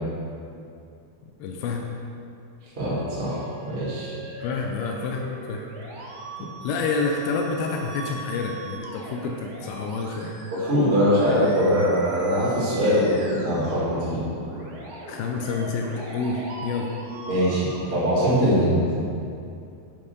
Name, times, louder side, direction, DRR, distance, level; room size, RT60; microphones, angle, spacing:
voice 1, 1.4-1.8 4.4-5.7 6.0-6.1 6.4-10.4 15.1-16.9, left 4 dB, 80° left, 1 dB, 2.1 m, -28 dB
voice 2, 2.8-3.4 3.6-4.1 10.6-14.2 17.3-18.8, equal, 35° right, -9 dB, 0.9 m, -22 dB
Musical instrument, 2.9-18.8, right 2 dB, 85° right, 1.2 m, -41 dB
7.7 x 5.2 x 6.6 m, 2.5 s
omnidirectional pair, 4.9 m